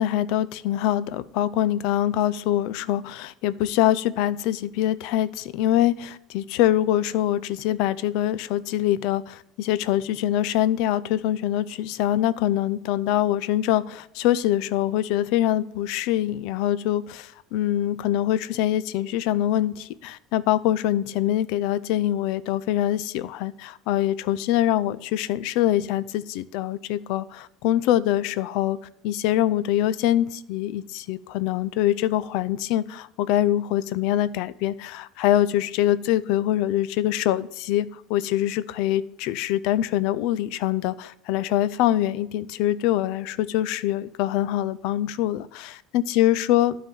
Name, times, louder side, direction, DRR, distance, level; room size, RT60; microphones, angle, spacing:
voice 1, 0.0-28.8 29.0-46.8, left 13 dB, 60° left, 16 dB, 0.4 m, -24 dB
12.0 x 4.0 x 7.6 m, 0.78 s
cardioid pair, 165°, 0 cm